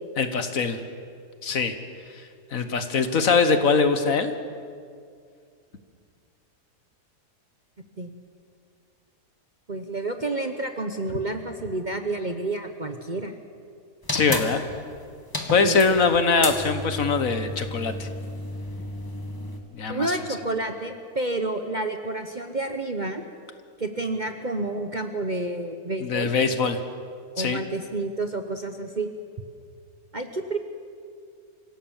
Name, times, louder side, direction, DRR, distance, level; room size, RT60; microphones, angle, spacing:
voice 1, 0.2-0.8 1.4-1.7 2.5-4.3 14.1-14.6 15.5-18.1 19.7-20.1 26.0-26.8 27.4-27.6, left 4 dB, 55° left, 9 dB, 1.6 m, -22 dB
voice 2, 9.7-13.3 15.6-16.0 19.9-23.2 23.8-26.3 27.4-29.1 30.1-30.6, right 2 dB, 35° right, 6 dB, 1.0 m, -29 dB
sound 1, 14.0-19.6, left 1 dB, 15° left, 1.9 m, -32 dB
25.5 x 16.5 x 7.3 m, 2.2 s
omnidirectional pair, 1.8 m